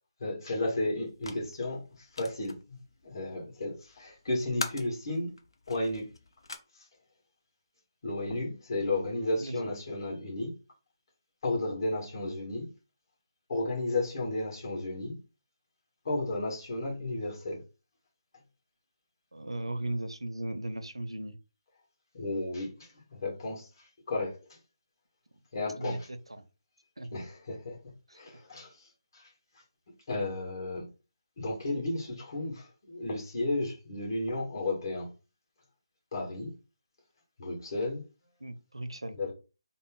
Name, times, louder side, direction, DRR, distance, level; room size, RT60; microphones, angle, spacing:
voice 1, 0.2-2.8 3.0-5.3 5.7-6.1 8.0-10.5 11.4-12.7 13.5-15.2 16.0-17.6 22.1-23.7 24.1-24.6 25.5-26.1 27.1-27.8 28.1-28.7 29.1-29.3 30.1-30.9 31.4-35.1 36.1-36.5 37.4-38.0 39.2-39.3, left 2 dB, 50° left, 1.9 m, -33 dB
sound 1, 1.0-6.6, left 3 dB, 65° left, 0.7 m, -44 dB
voice 2, 19.3-21.4 25.8-26.4 27.0-27.1 28.1-28.2 38.4-39.2, right 1 dB, 85° right, 0.6 m, -37 dB
4.0 x 2.0 x 3.8 m
figure-of-eight pair, 150°, 3 cm